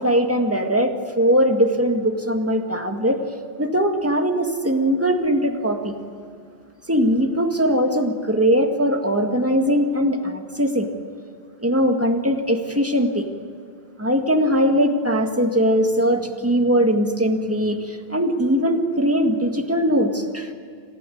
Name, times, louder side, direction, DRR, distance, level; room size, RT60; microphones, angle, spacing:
voice 1, 0.0-3.2 3.6-5.9 6.9-10.9 11.6-13.3 14.0-20.5, equal, 15° right, 4 dB, 1.9 m, -20 dB
27.5 x 15.5 x 9.4 m, 2.2 s
omnidirectional pair, 1.1 m